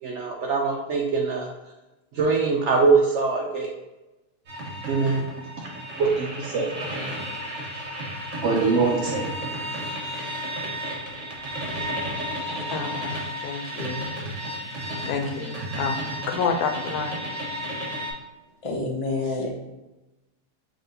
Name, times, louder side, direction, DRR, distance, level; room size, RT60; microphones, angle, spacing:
voice 1, 0.0-1.5 2.1-3.7 4.9-5.2 6.0-6.7 8.4-9.3, right 4 dB, 70° right, 0.7 m, -23 dB
sound 1, 4.5-18.1, equal, 55° right, 1.4 m, -33 dB
voice 2, 12.7-14.1 15.0-17.2, left 5 dB, 70° left, 1.0 m, -29 dB
voice 3, 18.6-19.5, left 3 dB, 45° left, 0.4 m, -27 dB
5.7 x 2.8 x 2.7 m
omnidirectional pair, 1.7 m